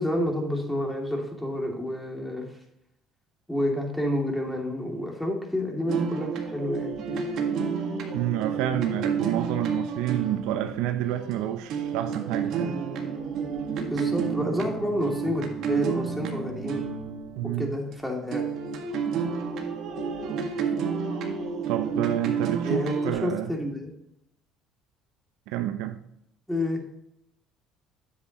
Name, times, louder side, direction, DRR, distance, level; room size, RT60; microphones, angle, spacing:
voice 1, 0.0-2.5 3.5-7.0 13.9-16.9 17.6-18.5 22.6-23.9 26.5-26.8, left 1 dB, 5° left, 2.7 m, -29 dB
sound 1, 5.9-17.9 18.3-23.1, right 5 dB, 65° right, 1.7 m, -30 dB
voice 2, 8.1-12.8 17.4-17.8 21.7-23.5 25.5-26.0, right 12 dB, 80° right, 0.7 m, -29 dB
9.8 x 8.1 x 3.0 m
supercardioid pair, 90°, 0 cm